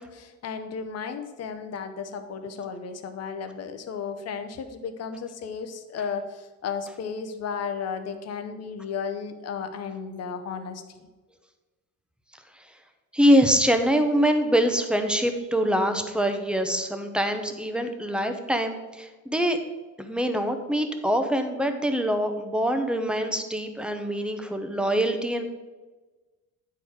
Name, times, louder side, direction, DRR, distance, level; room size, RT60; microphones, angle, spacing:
voice 1, 0.0-10.8, left 6 dB, 45° left, 7 dB, 0.8 m, -34 dB
voice 2, 13.1-19.6 20.0-25.5, equal, 5° right, 6 dB, 0.7 m, -24 dB
9.6 x 4.5 x 5.0 m, 1.2 s
cardioid pair, 130°, 34 cm